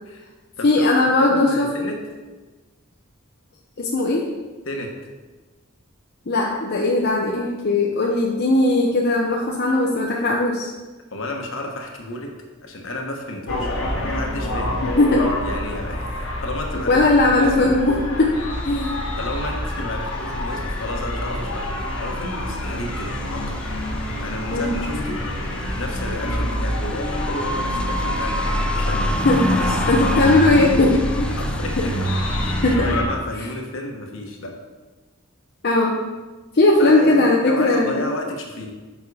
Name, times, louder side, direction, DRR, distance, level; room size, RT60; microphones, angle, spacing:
voice 1, 0.6-1.7 3.8-4.3 6.3-10.7 14.8-15.3 16.9-18.4 18.6-19.0 24.5-24.7 28.9-29.4 29.9-31.4 31.8-31.9 32.5-32.9 35.6-36.0 36.5-38.1, left 2 dB, 50° left, -2 dB, 0.8 m, -18 dB
voice 2, 1.2-2.0 4.6-4.9 11.1-12.3 12.6-13.7 14.0-14.8 15.4-16.0 16.4-16.9 17.4-17.8 19.2-23.6 24.2-25.2 25.7-29.2 29.5-29.8 31.3-31.9 32.4-34.5 36.8-38.7, left 1 dB, 65° left, 2 dB, 1.3 m, -32 dB
sound 1, 13.5-33.0, left 1 dB, 90° left, 1.4 m, -26 dB
sound 2, 18.5-32.8, left 1 dB, 5° left, 0.3 m, -36 dB
7.1 x 5.6 x 4.8 m, 1.3 s
head